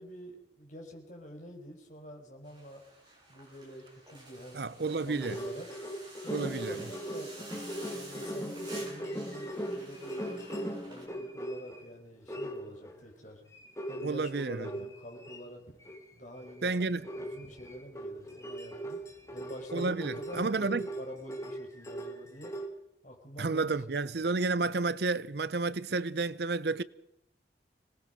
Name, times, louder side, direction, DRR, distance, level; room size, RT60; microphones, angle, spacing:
voice 1, 0.0-2.8 3.3-5.7 6.2-7.4 7.9-10.3 10.8-13.4 13.9-15.6 16.1-16.8 17.2-19.0 19.3-22.6 23.0-24.1, equal, 45° left, 4.9 m, -47 dB
sound 1, 2.4-11.0, right 2 dB, 25° right, 7.2 m, -51 dB
voice 2, 4.5-5.4 6.3-6.8 14.0-14.7 16.6-17.1 19.7-20.9 23.4-26.8, right 3 dB, 65° right, 0.7 m, -31 dB
sound 2, 4.9-11.9 12.3-13.0 13.5-15.4 15.8-16.1 16.4-16.6 17.0-22.7, right 1 dB, 15° left, 2.0 m, -39 dB
26.0 x 19.0 x 5.2 m
head